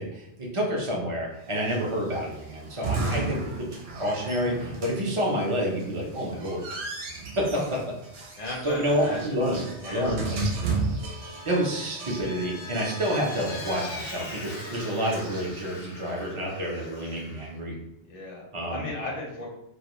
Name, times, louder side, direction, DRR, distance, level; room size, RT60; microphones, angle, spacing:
voice 1, 0.0-6.9 7.4-7.5 8.6-10.4 11.5-17.7 18.5-18.9, equal, 40° right, -2 dB, 0.5 m, -29 dB
sound 1, 1.6-15.9, right 3 dB, 70° right, 0.8 m, -35 dB
voice 2, 8.4-10.2 18.1-19.5, left 2 dB, 50° left, -3 dB, 0.6 m, -36 dB
Vehicle, 11.1-17.5, left 2 dB, 85° left, 0.9 m, -41 dB
2.3 x 2.2 x 2.9 m, 0.81 s
omnidirectional pair, 1.2 m